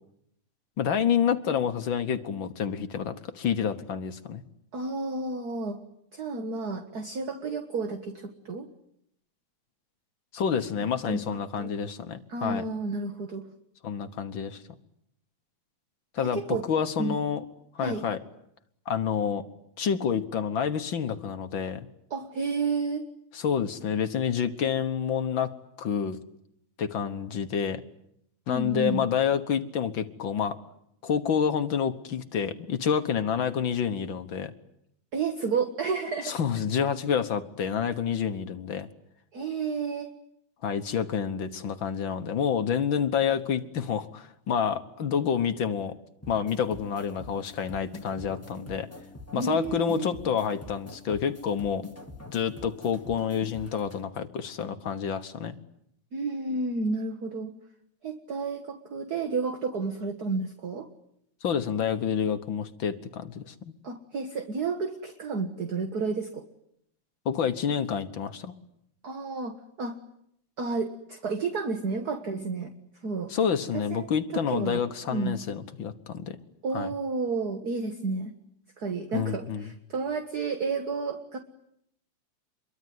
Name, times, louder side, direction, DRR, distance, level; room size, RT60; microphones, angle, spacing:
voice 1, 0.8-4.4 10.3-12.6 13.8-14.6 16.1-17.4 17.7-18.2 18.9-19.4 19.8-21.9 23.3-25.5 25.8-26.2 26.8-27.8 28.5-30.5 31.0-34.5 36.2-38.9 40.6-45.9 46.3-48.9 49.3-51.8 52.3-55.5 61.4-63.7 67.2-68.5 73.3-76.4 76.7-76.9 79.1-79.7, left 7 dB, 55° left, 9 dB, 1.5 m, -28 dB
voice 2, 4.7-5.8 6.1-8.7 11.1-11.2 11.6-11.7 12.3-13.4 16.2-16.6 17.0-17.2 17.8-18.0 22.1-23.1 28.5-29.0 35.1-36.3 36.8-36.9 39.3-40.1 49.3-50.1 56.1-57.5 58.0-60.9 63.8-66.4 69.0-70.0 70.6-72.7 73.0-73.3 73.7-74.1 74.3-74.8 75.1-75.3 76.6-78.3 78.8-81.4, right 4 dB, 40° right, 5 dB, 1.6 m, -31 dB
sound 1, 46.2-54.0, left 2 dB, 5° left, 1.6 m, -45 dB
26.5 x 23.0 x 9.5 m, 0.76 s
omnidirectional pair, 3.5 m